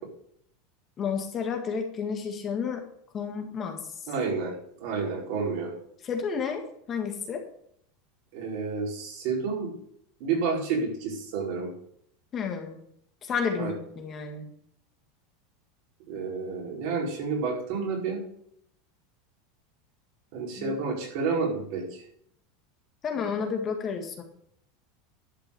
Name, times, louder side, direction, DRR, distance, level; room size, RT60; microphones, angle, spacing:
voice 1, 1.0-2.8 3.1-3.8 6.0-7.4 12.3-12.8 13.3-14.5 20.6-20.7 23.0-24.2, left 6 dB, 25° left, 3 dB, 1.8 m, -31 dB
voice 2, 4.1-4.5 4.8-5.7 8.3-9.8 10.2-11.7 13.5-13.7 16.1-18.2 20.3-22.0, right 4 dB, 60° right, -2 dB, 4.9 m, -30 dB
11.5 x 6.0 x 7.0 m, 0.70 s
supercardioid pair, 150°, 0 cm